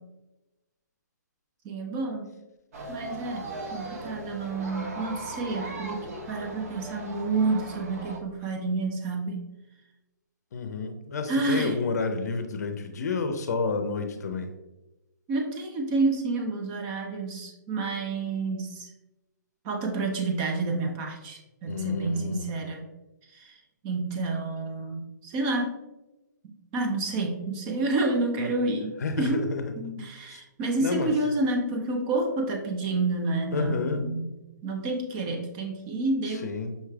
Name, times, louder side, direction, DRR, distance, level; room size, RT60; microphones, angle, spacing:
voice 1, 1.6-2.3 2.9-9.4 11.3-11.7 15.3-18.9 19.6-22.9 23.3-25.8 26.7-29.5 29.8-34.3 34.6-36.5, right 2 dB, 25° right, 2 dB, 0.5 m, -29 dB
sound 1, 2.7-8.2, right 2 dB, 50° right, 0.8 m, -38 dB
voice 2, 10.5-14.5 21.7-22.5 29.0-29.7 30.3-30.4 30.8-31.1 33.5-34.0 36.4-36.7, left 4 dB, 60° left, 7 dB, 0.6 m, -30 dB
5.5 x 3.1 x 2.3 m, 1.0 s
hypercardioid pair, 145°, 10 cm